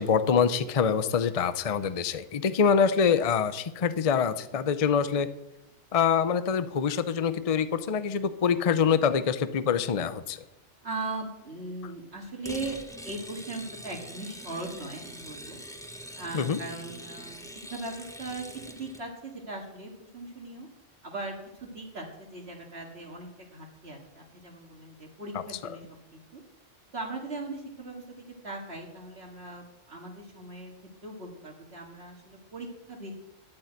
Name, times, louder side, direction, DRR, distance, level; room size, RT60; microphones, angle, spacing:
voice 1, 0.0-5.3 5.9-10.4 16.3-16.6, left 6 dB, 35° left, 12 dB, 0.7 m, -25 dB
voice 2, 10.8-12.8 13.0-15.6 15.8-17.4 17.7-20.7 21.0-25.9 26.3-26.4 26.9-30.7 31.0-33.2, right 2 dB, 55° right, 0 dB, 2.4 m, -39 dB
sound 1, 12.4-19.0, equal, 5° left, 1.1 m, -43 dB
11.0 x 8.7 x 9.1 m, 0.91 s
omnidirectional pair, 1.3 m